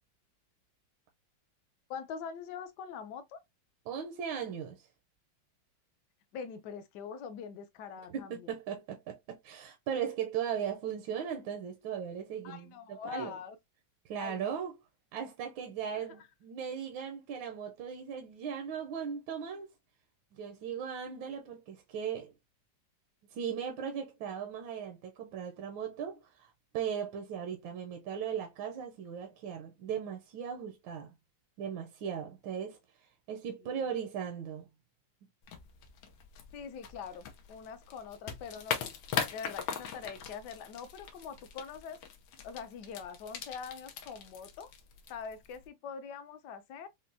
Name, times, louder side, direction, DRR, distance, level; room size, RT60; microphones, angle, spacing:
voice 1, 1.9-3.4 6.3-8.5 12.4-13.6 14.2-14.5 33.6-33.7 36.5-38.9 39.3-42.0 42.4-44.7 45.1-46.9, left 6 dB, 70° left, 1.1 m, -43 dB
voice 2, 3.9-4.8 8.1-13.4 14.0-14.7 15.1-19.7 20.3-22.3 23.3-31.1 31.6-34.7, right 8 dB, 85° right, 1.4 m, -38 dB
sound 1, 35.4-45.7, left 7 dB, 90° left, 1.5 m, -41 dB
5.8 x 2.0 x 2.6 m
omnidirectional pair, 2.1 m